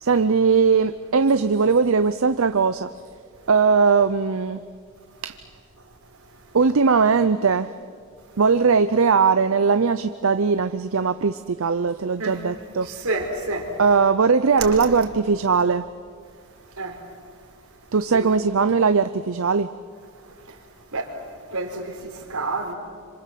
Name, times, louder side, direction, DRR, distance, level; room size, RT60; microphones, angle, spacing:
voice 1, 0.0-2.9 3.5-4.6 5.2-5.4 6.5-7.7 8.4-12.9 13.8-15.8 17.9-19.7, right 5 dB, 65° right, 0.6 m, -19 dB
voice 2, 12.8-13.7 14.7-14.8 16.8-17.0 18.1-18.3 20.9-21.1 21.5-22.7, right 2 dB, 85° right, 4.5 m, -29 dB
27.0 x 26.0 x 7.6 m
head